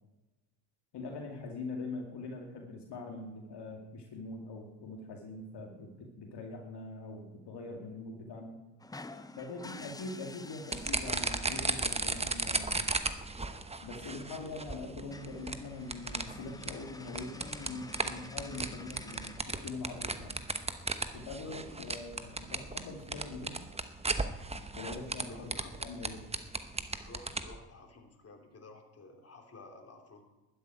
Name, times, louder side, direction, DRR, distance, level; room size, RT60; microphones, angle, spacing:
voice 1, 0.9-8.6 9.4-12.9 13.8-20.4 21.1-23.6 24.7-26.3, left 3 dB, 55° left, 1 dB, 2.4 m, -43 dB
sound 1, 8.8-12.4 14.0-14.1 14.4-14.5 14.8-14.9 15.1-19.4, left 2 dB, 10° left, 0.6 m, -49 dB
sound 2, 10.7-27.6, right 3 dB, 15° right, 1.0 m, -36 dB
voice 2, 21.4-21.9 25.3-25.7 27.0-30.3, left 2 dB, 30° left, 2 dB, 3.3 m, -52 dB
12.5 x 8.1 x 9.2 m, 1.1 s
cardioid pair, 95°, 49 cm